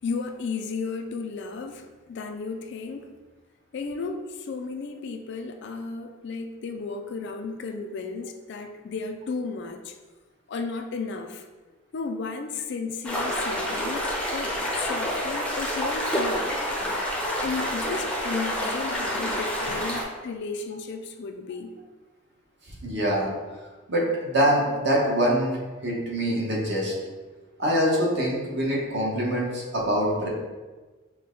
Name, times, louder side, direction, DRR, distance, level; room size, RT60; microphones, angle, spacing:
voice 1, 0.0-3.1 3.7-10.0 10.5-11.4 11.9-16.5 17.2-21.8, left 4 dB, 55° left, 5 dB, 0.3 m, -34 dB
sound 1, 13.0-20.0, equal, 5° left, 0.6 m, -28 dB
voice 2, 22.8-23.3 23.9-25.6 25.8-26.9 27.6-30.3, equal, 50° right, -3 dB, 1.0 m, -24 dB
5.7 x 2.2 x 3.7 m, 1.3 s
head